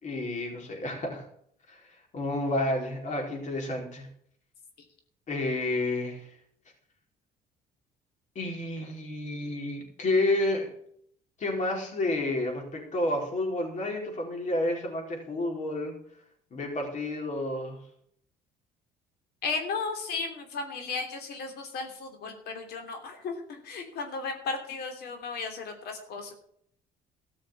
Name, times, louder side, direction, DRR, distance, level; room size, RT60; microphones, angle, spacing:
voice 1, 0.0-1.2 1.7-1.8 2.1-4.1 5.3-6.3 8.3-10.7 11.4-15.9 16.5-17.8, left 2 dB, 45° left, 1 dB, 4.4 m, -30 dB
voice 2, 19.4-26.3, left 4 dB, 70° left, 5 dB, 3.0 m, -35 dB
14.0 x 6.4 x 8.4 m, 0.66 s
cardioid pair, 110°, 17 cm